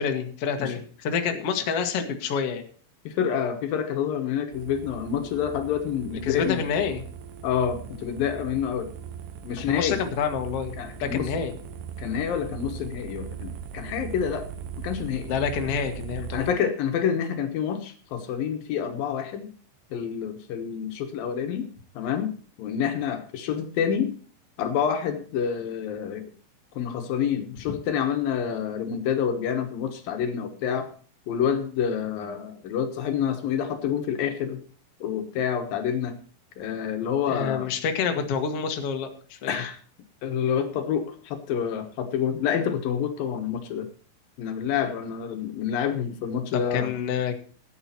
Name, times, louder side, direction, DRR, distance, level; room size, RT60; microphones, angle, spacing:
voice 1, 0.0-2.7 6.2-7.0 9.6-11.6 15.3-16.4 37.3-39.7 46.7-47.4, left 6 dB, 50° left, 5 dB, 2.1 m, -28 dB
voice 2, 3.0-6.6 7.4-9.0 9.4-10.0 10.8-11.3 12.0-14.5 14.8-15.3 16.3-19.5 19.9-21.7 21.9-22.3 22.6-24.1 24.6-26.3 26.8-30.9 31.3-34.6 35.0-36.2 36.6-37.7 39.5-39.8 40.2-43.9 44.4-46.9, left 8 dB, 75° left, 7 dB, 3.0 m, -28 dB
sound 1, 4.5-16.5, right 8 dB, 70° right, 2.5 m, -39 dB
15.0 x 9.1 x 4.4 m, 0.42 s
omnidirectional pair, 4.3 m